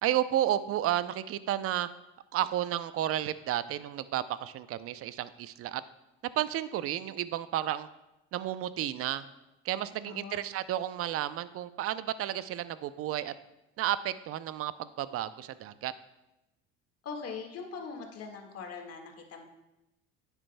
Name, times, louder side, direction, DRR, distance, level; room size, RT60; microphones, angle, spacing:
voice 1, 0.0-1.9 2.3-5.8 6.2-7.9 8.3-9.3 9.6-13.3 13.8-15.9, right 12 dB, 50° right, 15 dB, 0.5 m, -32 dB
voice 2, 10.0-10.4 17.0-19.5, left 5 dB, 55° left, 2 dB, 1.8 m, -41 dB
9.9 x 8.0 x 2.2 m, 0.94 s
supercardioid pair, 75°, 30 cm